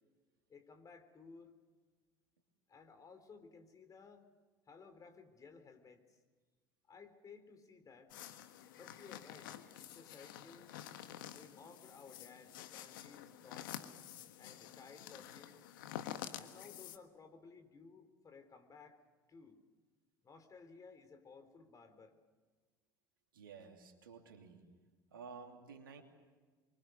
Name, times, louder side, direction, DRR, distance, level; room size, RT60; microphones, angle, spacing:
voice 1, 0.5-1.5 2.7-4.3 4.7-6.2 6.9-8.1 8.7-10.7 11.3-13.8 14.4-15.7 16.3-19.0 19.3-19.6 20.2-22.2, left 5 dB, 30° left, 7 dB, 3.9 m, -57 dB
sound 1, 8.1-17.0, left 11 dB, 70° left, 1.4 m, -49 dB
voice 2, 23.3-24.6 25.1-26.0, right 5 dB, 80° right, 4 dB, 2.8 m, -53 dB
27.5 x 24.0 x 6.7 m, 1.4 s
hypercardioid pair, 70°, 11 cm